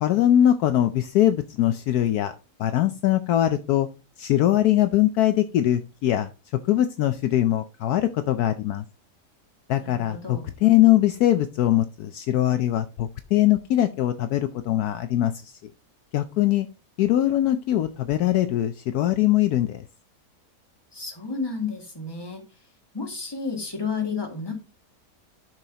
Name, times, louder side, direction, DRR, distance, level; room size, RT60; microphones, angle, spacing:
voice 1, 0.0-2.3 2.6-3.9 4.2-6.3 6.7-8.8 9.7-15.5 16.1-16.7 17.0-19.8, left 13 dB, 75° left, 9 dB, 1.1 m, -22 dB
voice 2, 9.8-10.5 20.9-22.4 22.9-24.5, left 4 dB, 15° left, 1 dB, 1.9 m, -31 dB
10.5 x 6.3 x 2.8 m, 0.30 s
omnidirectional pair, 1.8 m